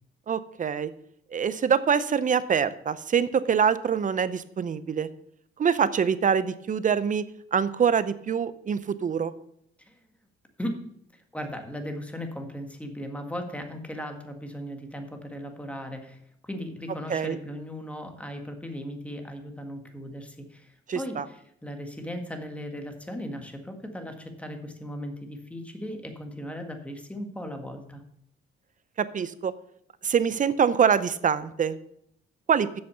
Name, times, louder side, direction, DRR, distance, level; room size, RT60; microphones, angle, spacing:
voice 1, 0.3-0.9 1.3-5.1 5.6-7.2 7.5-9.3 17.1-17.4 20.9-21.2 29.0-29.5 30.0-31.7 32.5-32.7, right 7 dB, 40° right, 15 dB, 0.6 m, -24 dB
voice 2, 11.1-28.0, equal, 5° left, 5 dB, 1.7 m, -37 dB
8.0 x 6.8 x 6.8 m, 0.71 s
cardioid pair, 90°, 20 cm